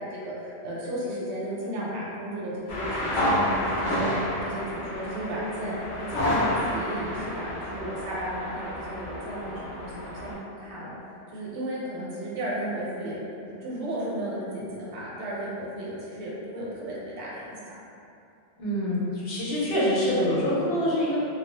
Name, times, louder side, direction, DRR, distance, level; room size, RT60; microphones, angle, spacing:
voice 1, 0.0-11.0 11.3-13.2 13.4-17.8, right 1 dB, 80° right, -7 dB, 0.9 m, -34 dB
sound 1, 2.7-10.3, equal, 90° left, 0.9 m, -30 dB
voice 2, 18.6-21.2, equal, 60° left, -7 dB, 0.8 m, -25 dB
2.1 x 2.0 x 2.8 m, 2.6 s
omnidirectional pair, 1.2 m